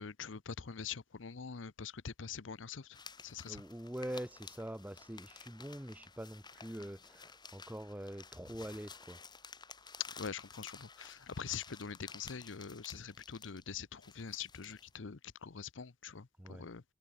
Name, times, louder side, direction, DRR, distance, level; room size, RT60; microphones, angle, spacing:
voice 1, 0.0-3.0 3.2-3.6 10.2-16.8, left 6 dB, 85° left, 0.8 m, -44 dB
sound 1, 2.9-15.0, left 5 dB, 25° left, 3.7 m, -54 dB
voice 2, 3.5-9.2 16.4-16.7, equal, 10° right, 1.3 m, -44 dB
head